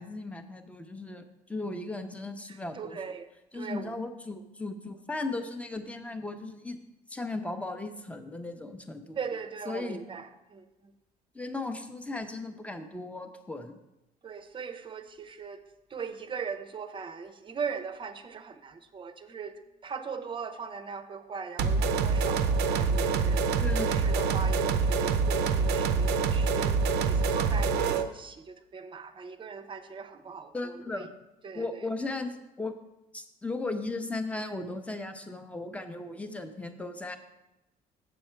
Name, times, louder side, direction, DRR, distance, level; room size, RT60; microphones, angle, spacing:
voice 1, 0.0-3.0 3.5-6.8 7.1-9.2 9.7-10.0 11.3-13.8 23.6-24.1 30.5-31.1 31.5-32.7 33.1-37.2, left 2 dB, 10° left, 7 dB, 0.8 m, -36 dB
voice 2, 2.7-3.3 3.5-3.9 9.2-10.6 14.2-15.6 15.9-31.1 31.4-31.8, right 5 dB, 30° right, 10 dB, 0.7 m, -39 dB
sound 1, 21.6-28.1, right 5 dB, 80° right, 0.6 m, -26 dB
7.5 x 7.0 x 4.5 m, 0.94 s
cardioid pair, 110°, 17 cm